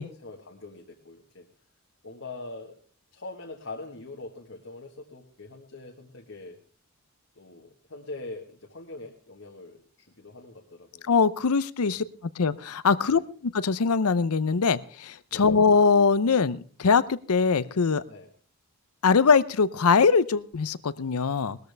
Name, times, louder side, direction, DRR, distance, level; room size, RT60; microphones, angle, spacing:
voice 1, 0.2-1.4 2.0-2.7 3.1-6.6 7.3-11.1 11.8-12.0 13.1-13.2 15.3-15.5 18.1-18.3, left 2 dB, 60° left, 1 dB, 1.4 m, -43 dB
voice 2, 11.1-12.0 12.4-13.2 13.6-18.0 19.0-21.6, left 5 dB, 85° left, 17 dB, 0.6 m, -22 dB
20.0 x 13.5 x 3.4 m, 0.43 s
head